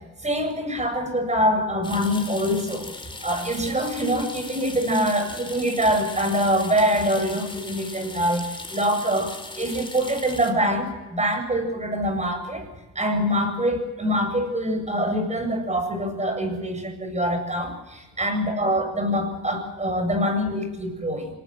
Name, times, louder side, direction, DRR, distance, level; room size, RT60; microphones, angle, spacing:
voice 1, 0.2-2.9 3.2-8.4 8.7-12.6 13.0-21.3, equal, 20° right, 7 dB, 7.6 m, -24 dB
sound 1, 1.8-10.5, left 2 dB, 15° left, 4.8 m, -39 dB
26.5 x 19.5 x 7.8 m, 1.1 s
cardioid pair, 80°, 30 cm